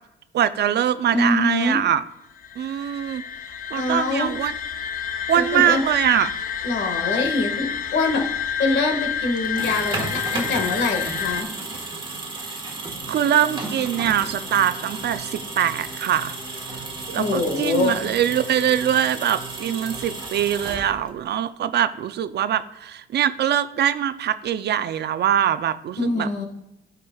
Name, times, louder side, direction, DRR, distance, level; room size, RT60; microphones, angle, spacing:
voice 1, 0.3-2.0 2.6-3.2 3.7-4.5 5.3-6.3 13.1-16.3 17.1-26.3, right 10 dB, 60° right, 13 dB, 0.4 m, -22 dB
voice 2, 1.1-1.8 3.8-4.3 5.3-5.8 6.6-11.5 17.2-18.0 26.0-26.4, left 3 dB, 65° left, 3 dB, 1.7 m, -24 dB
sound 1, 2.3-11.4, left 8 dB, 45° left, 0.6 m, -29 dB
sound 2, 9.4-21.3, right 3 dB, 25° right, 1.4 m, -34 dB
sound 3, 13.0-20.6, equal, 80° left, 1.7 m, -43 dB
11.5 x 5.0 x 2.3 m, 0.91 s
cardioid pair, 90°, 20 cm